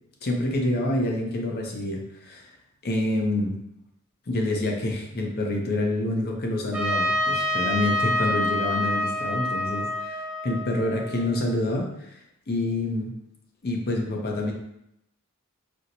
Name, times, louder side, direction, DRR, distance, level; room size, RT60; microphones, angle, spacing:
voice 1, 0.2-2.4 2.8-3.6 4.3-10.2 10.4-13.1 13.6-14.5, left 1 dB, 45° left, 1 dB, 0.6 m, -27 dB
Trumpet, 6.7-11.6, left 1 dB, 5° right, 0.5 m, -27 dB
4.3 x 2.0 x 2.6 m, 0.79 s
head